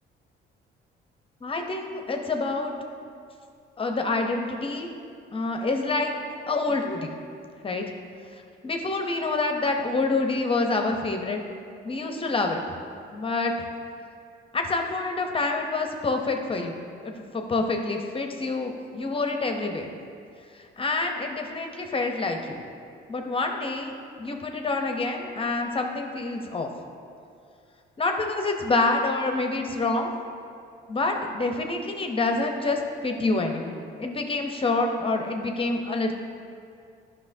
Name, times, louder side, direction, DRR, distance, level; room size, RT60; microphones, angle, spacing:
voice 1, 1.4-2.7 3.8-4.9 5.3-6.1 6.5-7.1 7.6-7.8 8.6-11.4 11.8-12.6 13.1-13.5 14.5-19.9 20.5-22.6 23.1-26.7 28.0-30.1 30.9-36.1, left 3 dB, 30° left, 3 dB, 0.6 m, -27 dB
10.5 x 5.8 x 2.6 m, 2.4 s
cardioid pair, 90°, 20 cm